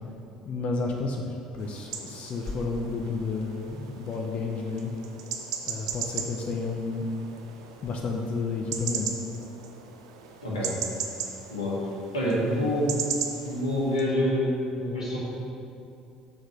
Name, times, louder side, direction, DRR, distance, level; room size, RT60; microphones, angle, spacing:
voice 1, 0.5-4.9 5.7-7.1 7.8-9.1 10.5-10.8, left 4 dB, 45° left, 1 dB, 0.7 m, -31 dB
sound 1, 1.6-14.0, right 7 dB, 75° right, 0.6 m, -37 dB
voice 2, 12.1-12.9 13.4-15.2, equal, 85° left, -6 dB, 1.6 m, -26 dB
6.4 x 5.2 x 6.3 m, 2.6 s
figure-of-eight pair, 60°, 3 cm